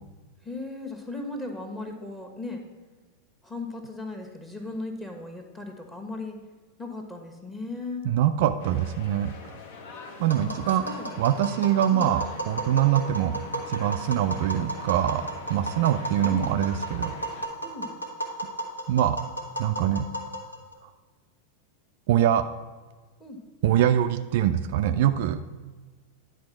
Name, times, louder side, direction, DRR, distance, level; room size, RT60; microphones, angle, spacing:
voice 1, 0.4-2.6 3.4-6.4 6.8-8.1 10.3-11.5 11.9-12.0 16.2-16.5 17.6-17.9 23.2-23.4, left 2 dB, 15° left, 2 dB, 1.3 m, -37 dB
voice 2, 8.0-9.3 10.2-10.8 11.2-13.4 13.7-17.1 18.9-19.2 19.6-20.0 22.1-22.4 23.6-25.4, right 11 dB, 50° right, 9 dB, 0.3 m, -23 dB
sound 1, 8.6-17.5, left 4 dB, 50° left, 0.9 m, -45 dB
Tap, 10.3-20.7, right 2 dB, 85° left, 1.4 m, -34 dB
10.5 x 4.1 x 6.0 m, 1.4 s
figure-of-eight pair, 90°, 0 cm